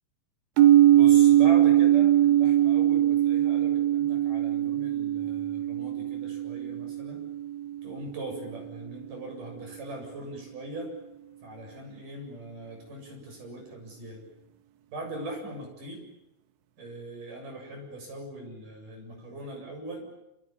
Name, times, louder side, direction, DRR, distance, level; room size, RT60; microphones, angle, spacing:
sound 1, 0.6-8.4, right 12 dB, 75° right, 3.5 m, -21 dB
voice 1, 0.9-7.3 7.8-10.9 11.4-14.3 14.9-16.1 16.8-20.1, right 1 dB, 40° right, 2 dB, 8.7 m, -40 dB
28.0 x 27.5 x 7.4 m, 0.87 s
omnidirectional pair, 6.0 m